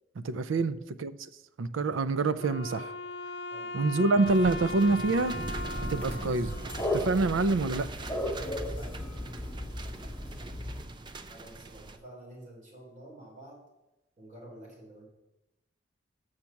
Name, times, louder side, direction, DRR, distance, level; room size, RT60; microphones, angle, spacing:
voice 1, 0.2-1.2 1.6-2.9 3.7-5.4 5.9-6.6 6.9-7.9, right 3 dB, 80° right, 13 dB, 0.5 m, -26 dB
Wind instrument woodwind instrument, 2.4-7.5, left 2 dB, 60° left, 0.6 m, -39 dB
sound 1, 4.2-12.0, right 2 dB, 25° right, 0.4 m, -41 dB
sound 2, 5.5-10.8, left 1 dB, 10° left, 2.0 m, -36 dB
voice 2, 8.4-9.0 11.3-13.6 14.2-15.0, right 1 dB, 40° right, -3 dB, 3.3 m, -49 dB
6.5 x 5.8 x 7.2 m, 0.98 s
head